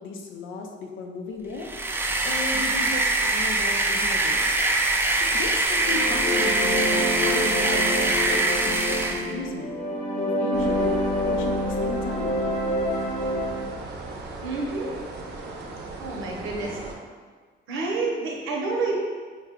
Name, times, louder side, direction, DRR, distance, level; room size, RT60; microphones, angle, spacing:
voice 1, 0.0-1.7 2.2-4.5 5.3-9.7 10.2-12.4, left 3 dB, 80° left, 3 dB, 0.6 m, -35 dB
sound 1, 1.6-9.3, right 2 dB, 10° right, 0.3 m, -23 dB
sound 2, 5.7-13.7, equal, 40° left, 0.8 m, -27 dB
sound 3, 10.5-16.9, right 1 dB, 60° right, 0.6 m, -37 dB
voice 2, 14.4-14.9 16.0-16.8 17.7-18.9, right 3 dB, 90° right, -1 dB, 0.8 m, -28 dB
4.6 x 2.2 x 3.6 m, 1.5 s
cardioid pair, 90°, 20 cm